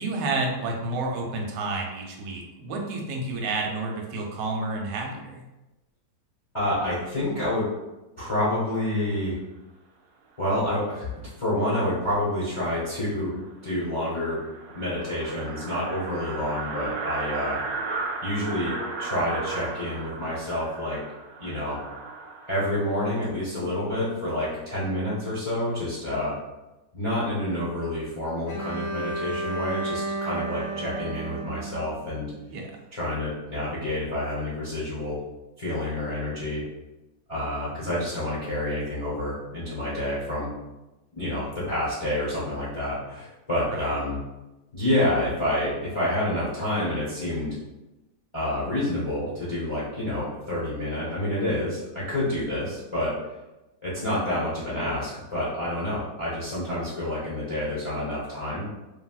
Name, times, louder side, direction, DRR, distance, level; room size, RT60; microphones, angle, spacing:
voice 1, 0.0-5.4 32.5-32.7 43.7-43.8, right 2 dB, 85° right, 0 dB, 1.2 m, -30 dB
voice 2, 6.5-7.7 8.2-9.4 10.4-11.1 11.4-14.4 14.7-17.6 18.2-21.0 21.4-21.8 22.5-26.3 26.9-32.3 32.9-35.2 35.6-36.6 37.3-40.5 41.1-44.2 44.7-47.5 48.3-53.1 53.8-58.6, left 1 dB, 35° left, -10 dB, 0.5 m, -28 dB
sound 1, 12.9-13.0 13.3-13.4 13.7-13.8 14.0-22.7, right 3 dB, 65° right, 0.9 m, -35 dB
Bowed string instrument, 28.5-32.5, right 2 dB, 65° left, 1.0 m, -33 dB
3.3 x 2.5 x 2.3 m, 1.0 s
omnidirectional pair, 1.8 m